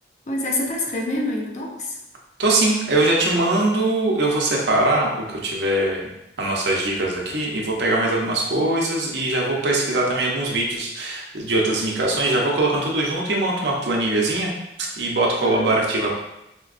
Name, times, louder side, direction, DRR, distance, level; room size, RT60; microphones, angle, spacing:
voice 1, 0.3-2.0 15.4-15.8, left 1 dB, 40° left, -1 dB, 0.5 m, -26 dB
voice 2, 2.4-6.1 6.4-14.5 15.0-16.1, right 2 dB, 70° right, -2 dB, 0.7 m, -21 dB
4.3 x 2.2 x 2.4 m, 0.89 s
head